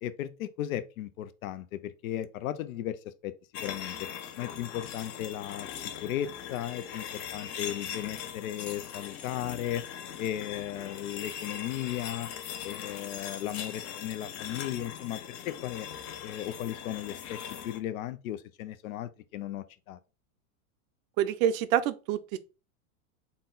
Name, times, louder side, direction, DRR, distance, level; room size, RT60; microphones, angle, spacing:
voice 1, 0.0-3.3 3.6-4.1 4.4-9.8 10.2-12.3 12.6-15.9 16.2-20.0, left 12 dB, 85° left, 0.6 m, -36 dB
sound 1, 3.5-17.8, left 9 dB, 35° left, 0.5 m, -40 dB
voice 2, 21.2-22.4, right 11 dB, 45° right, 0.4 m, -27 dB
4.0 x 2.2 x 3.9 m
supercardioid pair, 140°, 41 cm